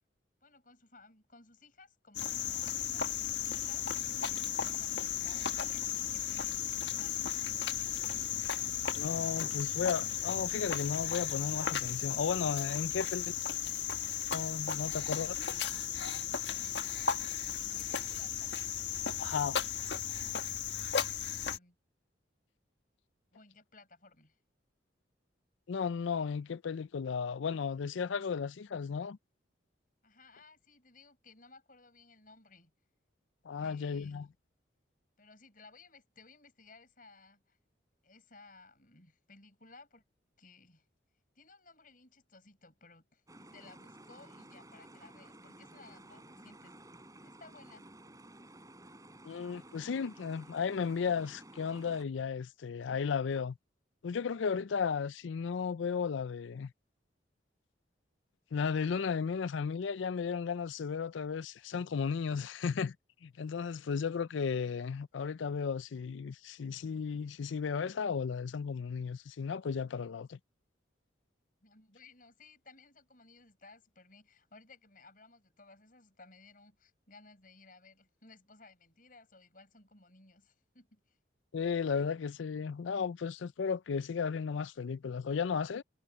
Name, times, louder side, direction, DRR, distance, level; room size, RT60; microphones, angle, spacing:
voice 1, 0.4-7.3 17.6-18.8 21.3-21.8 23.3-24.4 30.0-32.7 33.5-34.2 35.2-37.6 38.0-40.0 40.4-40.9 41.4-46.8 47.2-47.9 71.6-81.2, left 3 dB, 45° left, 7.4 m, -59 dB
Cricket, 2.1-21.6, left 8 dB, 70° left, 1.5 m, -35 dB
voice 2, 8.9-13.3 14.3-15.3 19.2-19.6 25.7-29.2 33.4-34.3 49.2-53.6 54.0-56.7 58.5-63.0 63.2-70.4 81.5-85.8, left 6 dB, 85° left, 0.4 m, -34 dB
sound 1, 43.3-52.0, right 1 dB, 20° right, 6.7 m, -54 dB
head